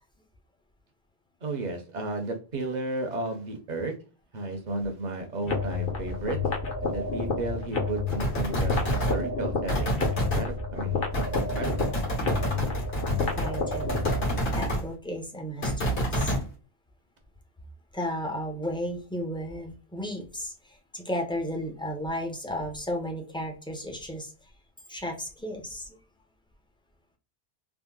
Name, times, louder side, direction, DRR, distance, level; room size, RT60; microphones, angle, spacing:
voice 1, 1.4-4.0 4.3-6.4 6.8-11.9, right 2 dB, 45° right, 4 dB, 0.7 m, -33 dB
sound 1, 5.4-14.4, left 4 dB, 60° left, 1.0 m, -30 dB
sound 2, 8.1-9.2 9.7-10.4 11.1-14.8 15.6-16.4, right 1 dB, 80° left, 1.6 m, -28 dB
voice 2, 13.4-14.0 14.5-16.3 17.9-24.3 24.9-26.0, equal, 5° left, 1 dB, 0.4 m, -34 dB
3.5 x 2.0 x 2.2 m, 0.35 s
omnidirectional pair, 1.1 m